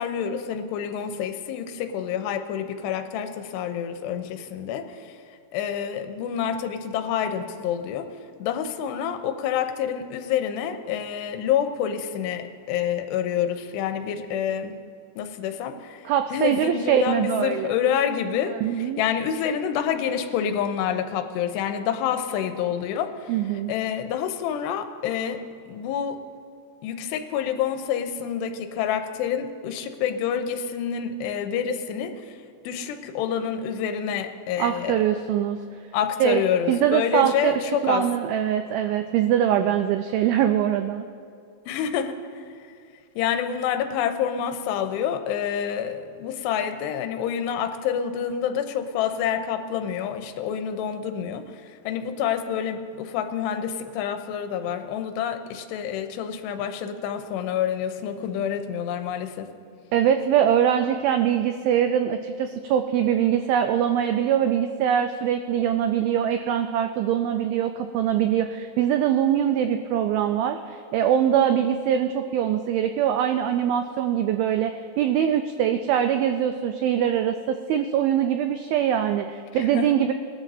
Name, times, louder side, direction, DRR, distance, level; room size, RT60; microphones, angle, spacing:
voice 1, 0.0-5.2 5.5-8.1 8.4-14.8 15.2-25.4 25.7-26.2 26.8-32.4 32.6-35.0 35.9-38.1 41.7-42.6 43.2-59.5 79.5-80.0, left 8 dB, 90° left, 7 dB, 2.8 m, -28 dB
voice 2, 16.1-17.7 18.6-19.0 23.3-23.7 34.6-35.6 36.2-36.4 36.7-37.5 37.8-41.1 59.9-80.1, right 9 dB, 90° right, 7 dB, 2.1 m, -23 dB
20.0 x 13.0 x 2.7 m, 2.4 s
omnidirectional pair, 4.9 m